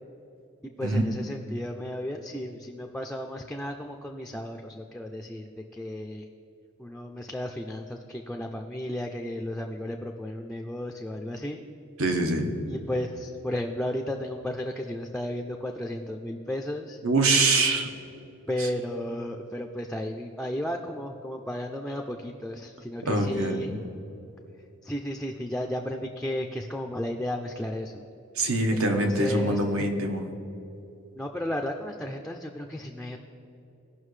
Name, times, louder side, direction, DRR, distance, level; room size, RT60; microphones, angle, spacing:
voice 1, 0.8-5.5 5.8-6.3 6.8-11.6 12.7-17.0 18.5-23.7 24.8-28.1 28.7-29.6 31.2-33.2, left 1 dB, 5° left, 2 dB, 0.3 m, -33 dB
voice 2, 12.0-12.5 17.0-17.9 18.6-18.7 23.1-23.8 28.4-30.2, right 2 dB, 85° right, 3 dB, 1.2 m, -24 dB
17.5 x 5.8 x 3.2 m, 2.9 s
head